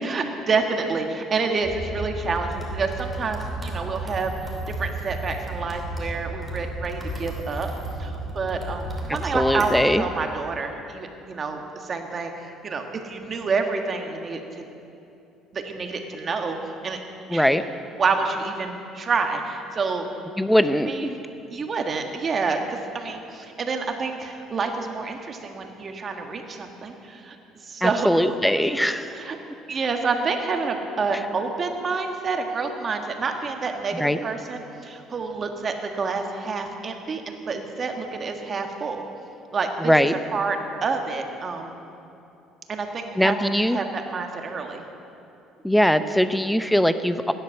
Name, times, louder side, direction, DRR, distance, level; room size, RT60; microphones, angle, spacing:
voice 1, 0.0-4.3 4.8-7.7 8.0-14.6 15.5-16.6 16.8-17.0 17.3-17.5 18.0-20.1 20.8-21.2 21.5-27.4 27.6-28.3 29.1-29.4 29.7-39.0 39.5-39.9 40.3-41.8 42.7-43.3 43.7-44.8, right 4 dB, 35° right, 4 dB, 1.6 m, -28 dB
sound 1, 1.6-9.9, right 2 dB, 15° right, 2.7 m, -33 dB
voice 2, 9.3-10.0 17.3-17.6 20.4-21.2 27.8-29.1 34.0-34.2 39.8-40.1 43.2-43.8 45.6-47.3, equal, ahead, 11 dB, 0.6 m, -21 dB
15.5 x 10.5 x 7.0 m, 2.8 s
cardioid pair, 120°, 0 cm